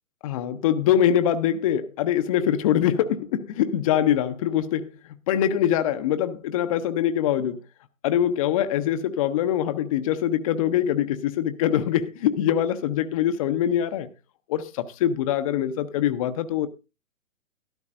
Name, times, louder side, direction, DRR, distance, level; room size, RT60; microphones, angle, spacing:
voice 1, 0.2-4.9 5.3-7.6 8.0-14.1 14.5-16.7, left 10 dB, 25° left, 0.5 m, -23 dB
12.0 x 12.0 x 2.5 m
figure-of-eight pair, 125°, 40 cm